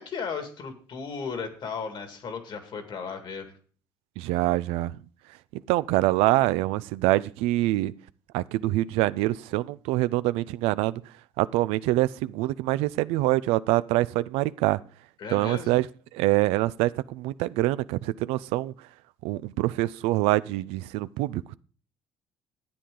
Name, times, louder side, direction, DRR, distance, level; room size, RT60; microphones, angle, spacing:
voice 1, 0.0-3.5 15.2-15.8, left 5 dB, 50° left, 2.0 m, -35 dB
voice 2, 4.2-5.0 5.7-7.9 8.3-11.0 11.4-14.8 15.3-15.9 16.1-18.7 19.2-21.6, right 17 dB, 85° right, 0.4 m, -25 dB
12.0 x 8.5 x 3.8 m
cardioid pair, 105°, 10 cm